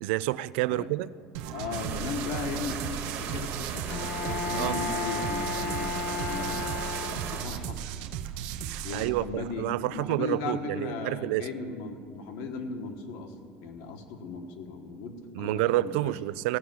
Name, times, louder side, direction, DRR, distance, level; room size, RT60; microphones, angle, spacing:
voice 1, 0.0-1.1 4.6-4.7 8.7-11.5 15.3-16.6, right 17 dB, 90° right, 18 dB, 0.3 m, -29 dB
sound 1, 1.3-9.1, right 10 dB, 65° right, 0.7 m, -36 dB
voice 2, 1.5-6.7 7.3-8.0 8.8-13.4 13.6-16.1, left 4 dB, 65° left, 5 dB, 1.4 m, -37 dB
sound 2, 1.7-7.4, right 7 dB, 40° right, 1.4 m, -38 dB
Bowed string instrument, 3.9-7.6, left 5 dB, 25° left, 0.5 m, -34 dB
16.5 x 5.7 x 9.2 m, 2.2 s
cardioid pair, 180°, 6 cm